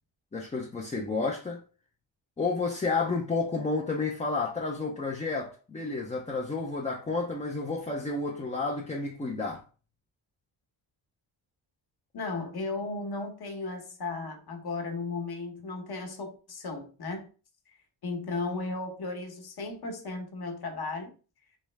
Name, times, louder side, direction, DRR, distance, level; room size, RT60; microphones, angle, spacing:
voice 1, 0.3-1.6 2.4-9.6, left 3 dB, 15° left, 0.4 m, -31 dB
voice 2, 12.1-17.3 18.0-21.1, left 3 dB, 50° left, 1.0 m, -35 dB
3.4 x 3.1 x 3.3 m
wide cardioid pair, 135°, 48 cm